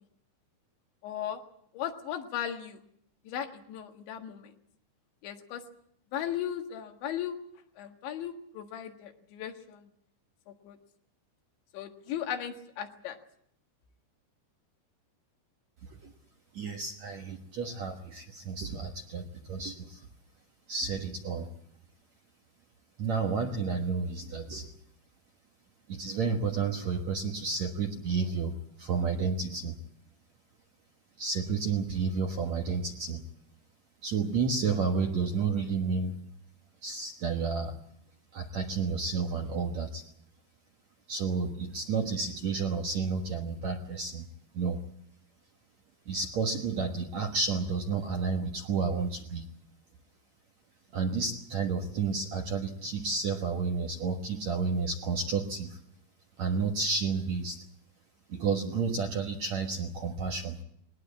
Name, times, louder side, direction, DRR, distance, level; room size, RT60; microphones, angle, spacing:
voice 1, 1.0-1.4 1.7-2.8 3.3-4.5 5.2-5.6 6.1-7.4 7.8-9.9 10.5-10.8 11.7-13.2, left 10 dB, 85° left, 5 dB, 4.0 m, -37 dB
voice 2, 16.5-20.1 20.7-21.5 23.0-24.7 25.9-29.7 31.2-33.2 34.0-36.2 36.8-37.7 38.3-40.0 41.1-44.3 44.5-44.8 46.1-49.5 50.9-55.8 56.4-57.6 58.3-60.6, right 4 dB, 60° right, 3 dB, 1.9 m, -31 dB
21.5 x 19.0 x 8.5 m, 0.70 s
omnidirectional pair, 5.1 m